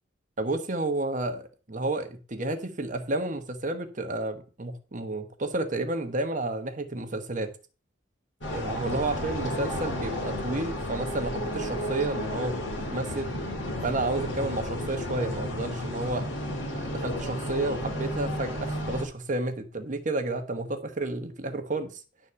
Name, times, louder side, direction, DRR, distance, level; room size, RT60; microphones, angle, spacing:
voice 1, 0.4-7.5 8.5-12.6 12.9-13.3 13.8-16.2 16.7-22.0, right 2 dB, 45° right, 1.2 m, -31 dB
sound 1, 8.4-19.0, left 1 dB, 70° left, 2.9 m, -32 dB
11.0 x 4.1 x 6.8 m
head